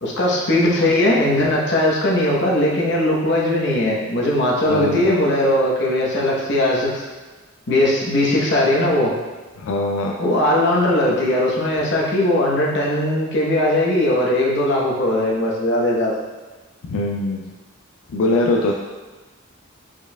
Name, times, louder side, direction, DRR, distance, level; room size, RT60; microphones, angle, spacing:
voice 1, 0.0-7.0 7.7-9.1 10.2-16.2, left 1 dB, 55° left, -3 dB, 0.9 m, -19 dB
voice 2, 4.7-5.1 9.6-10.2 16.8-17.5 18.1-18.7, left 2 dB, 90° left, 0 dB, 0.4 m, -21 dB
4.6 x 4.4 x 2.2 m, 1.2 s
head